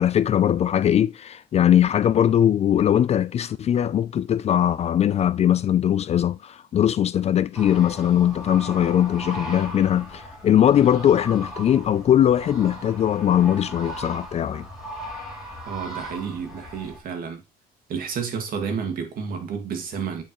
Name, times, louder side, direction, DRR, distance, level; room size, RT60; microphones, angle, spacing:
voice 1, 0.0-14.7, left 10 dB, 40° left, 0.4 m, -20 dB
sound 1, 7.5-17.0, equal, ahead, 4.2 m, -37 dB
voice 2, 15.7-17.4 17.9-20.2, right 6 dB, 60° right, 2.0 m, -30 dB
8.6 x 4.7 x 3.0 m
cardioid pair, 110°, 17 cm